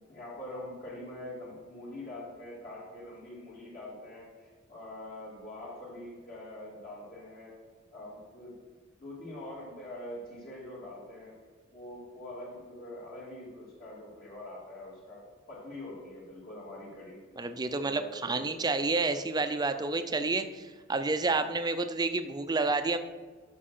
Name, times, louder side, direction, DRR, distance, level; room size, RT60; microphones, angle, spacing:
voice 1, 0.0-7.6 7.9-8.6 9.0-11.4 11.7-17.2 17.7-18.5 21.3-21.4, left 1 dB, 50° left, -5 dB, 2.7 m, -44 dB
voice 2, 17.4-23.0, right 3 dB, 20° right, 9 dB, 0.5 m, -29 dB
12.5 x 6.1 x 4.3 m, 1.5 s
head